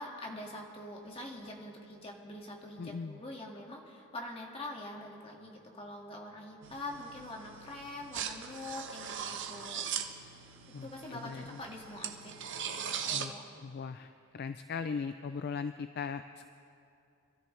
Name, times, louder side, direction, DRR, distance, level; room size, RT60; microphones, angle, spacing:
voice 1, 0.0-9.9 10.8-12.3 12.6-13.4, left 1 dB, 25° left, -1 dB, 1.9 m, -44 dB
voice 2, 2.8-3.2 10.7-11.6 13.1-13.3 13.6-16.5, left 5 dB, 45° left, 10 dB, 0.4 m, -39 dB
sound 1, 6.6-13.3, right 8 dB, 55° right, 0.9 m, -40 dB
26.0 x 13.0 x 3.2 m, 2.6 s
head